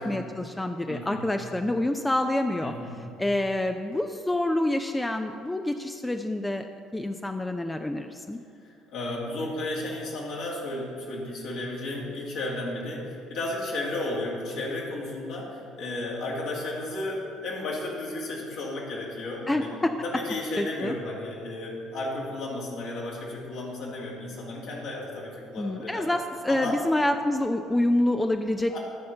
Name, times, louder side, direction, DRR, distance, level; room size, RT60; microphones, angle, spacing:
voice 1, 0.0-2.7 3.2-6.7 6.9-8.4 19.5-19.9 20.6-20.9 25.6-28.8, left 1 dB, 15° left, 6 dB, 0.5 m, -27 dB
voice 2, 0.9-1.4 2.6-3.2 8.6-19.7 20.0-26.1 26.5-26.8 28.7-28.8, left 2 dB, 60° left, -3 dB, 2.3 m, -33 dB
13.0 x 4.3 x 5.4 m, 2.4 s
hypercardioid pair, 55°, 0 cm